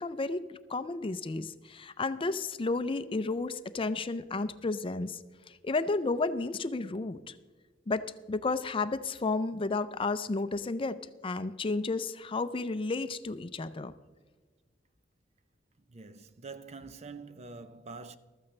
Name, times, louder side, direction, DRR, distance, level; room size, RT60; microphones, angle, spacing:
voice 1, 0.0-5.2 5.5-7.4 7.9-13.9, left 3 dB, 30° left, 0.5 m, -32 dB
voice 2, 15.9-18.2, right 4 dB, 35° right, 0.6 m, -45 dB
14.5 x 13.5 x 3.3 m
head